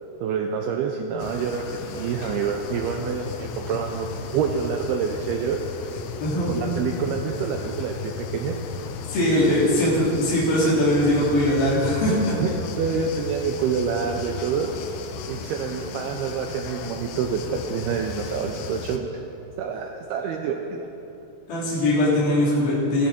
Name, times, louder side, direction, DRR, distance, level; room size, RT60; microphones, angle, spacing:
voice 1, 0.2-5.6 6.5-8.6 12.1-14.7 15.3-19.1 19.6-20.9, right 6 dB, 80° right, 3 dB, 2.3 m, -27 dB
sound 1, 1.2-19.0, left 6 dB, 80° left, 2.8 m, -35 dB
voice 2, 6.2-6.5 9.1-12.3 21.5-23.1, left 1 dB, 55° left, -8 dB, 5.3 m, -21 dB
14.0 x 14.0 x 5.3 m, 2.9 s
omnidirectional pair, 5.1 m